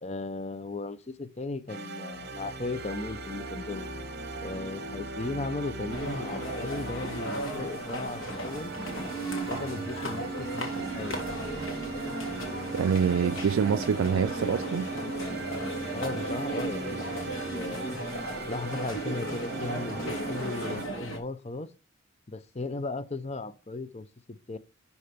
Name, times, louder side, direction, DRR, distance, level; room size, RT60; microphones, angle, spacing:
voice 1, 0.0-3.9 4.4-8.7 9.3-10.7 10.9-11.2 15.9-17.1 17.5-18.0 18.5-21.7 22.3-24.6, left 2 dB, 30° left, 0.6 m, -36 dB
sound 1, 1.7-20.9, right 3 dB, 50° right, 1.1 m, -42 dB
sound 2, 2.1-7.4 8.1-18.0 18.8-20.2, right 3 dB, 15° right, 2.2 m, -40 dB
sound 3, 5.9-21.2, right 1 dB, 75° left, 2.9 m, -36 dB
voice 2, 12.7-14.9, right 7 dB, 70° right, 0.3 m, -26 dB
11.0 x 4.3 x 5.2 m
head